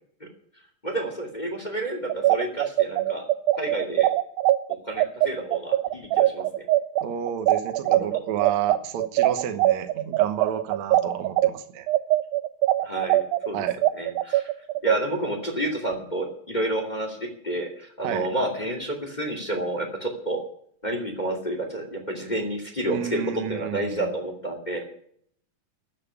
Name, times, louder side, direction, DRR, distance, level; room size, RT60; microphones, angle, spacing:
voice 1, 0.8-3.2 3.6-4.1 4.7-6.4 7.8-8.1 12.8-13.2 13.5-13.6 13.9-14.5 14.8-17.2 17.4-20.4 20.8-23.2 23.5-24.9, right 1 dB, 15° left, 3 dB, 2.2 m, -30 dB
sound 1, 2.1-11.5 11.9-15.0, right 15 dB, 90° right, 2.5 m, -21 dB
voice 2, 7.0-11.9 13.5-13.8 18.0-18.3 22.9-24.1, right 9 dB, 60° right, 7 dB, 2.3 m, -31 dB
14.0 x 7.5 x 9.7 m, 0.64 s
omnidirectional pair, 4.0 m